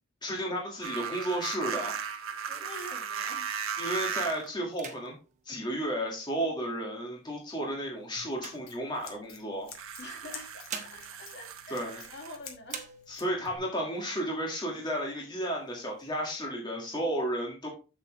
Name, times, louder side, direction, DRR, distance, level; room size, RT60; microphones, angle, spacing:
voice 1, 0.2-1.9 3.8-5.2 5.5-9.7 11.7-12.0 13.1-17.7, equal, 20° left, -1 dB, 1.7 m, -33 dB
sound 1, 0.8-4.5 5.6-5.7 9.7-12.4, right 7 dB, 75° right, 1.0 m, -37 dB
sound 2, 1.9-3.6 4.1-4.3 4.7-6.6 7.3-9.4 10.3-12.3 12.6-13.5 14.0-14.1 14.3-15.0 15.5-16.4, right 6 dB, 35° right, 1.1 m, -47 dB
voice 2, 2.6-3.5 10.0-12.9, left 1 dB, 55° left, 2 dB, 2.2 m, -46 dB
Scissors, 8.2-13.6, left 6 dB, 75° left, 2.0 m, -51 dB
7.4 x 7.3 x 3.1 m, 0.33 s
head